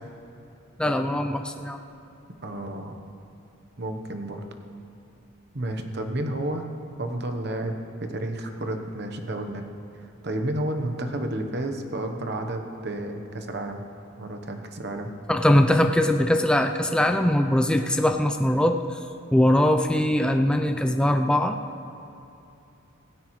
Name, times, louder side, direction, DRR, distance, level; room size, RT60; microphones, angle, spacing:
voice 1, 0.8-1.8 15.3-18.8 19.3-21.6, left 1 dB, 5° left, 5 dB, 0.4 m, -21 dB
voice 2, 2.4-3.0 3.8-4.4 5.5-6.7 7.0-9.7 10.0-13.8 14.2-15.1, right 1 dB, 50° right, 5 dB, 1.0 m, -31 dB
16.5 x 15.5 x 3.2 m, 2.8 s
head